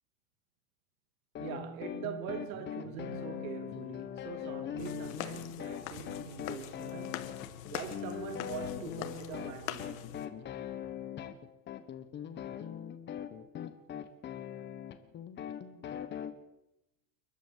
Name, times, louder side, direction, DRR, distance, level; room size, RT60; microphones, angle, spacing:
sound 1, 1.3-16.3, left 10 dB, 25° left, 1.4 m, -41 dB
voice 1, 1.4-7.4 7.7-10.1, right 8 dB, 85° right, 2.7 m, -43 dB
sound 2, 4.8-10.3, left 13 dB, 75° left, 2.1 m, -43 dB
29.5 x 11.5 x 7.6 m
supercardioid pair, 160°, 40 cm